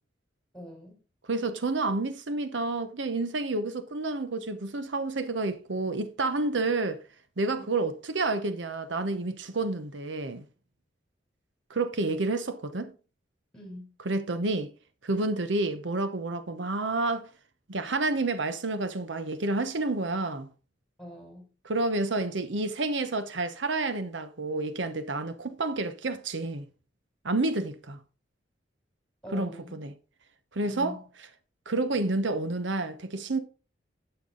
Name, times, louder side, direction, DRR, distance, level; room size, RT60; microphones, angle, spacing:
voice 1, 0.5-1.0 7.5-7.7 13.5-13.9 21.0-21.4 29.2-29.8 30.6-31.1, equal, 5° left, 4.1 m, -43 dB
voice 2, 1.3-7.0 7.4-10.4 11.7-12.9 14.0-14.7 15.0-17.3 17.7-20.5 21.6-26.7 27.2-28.0 29.3-29.9 30.5-31.0 31.7-33.4, right 2 dB, 85° right, 0.9 m, -29 dB
10.5 x 6.9 x 3.8 m
head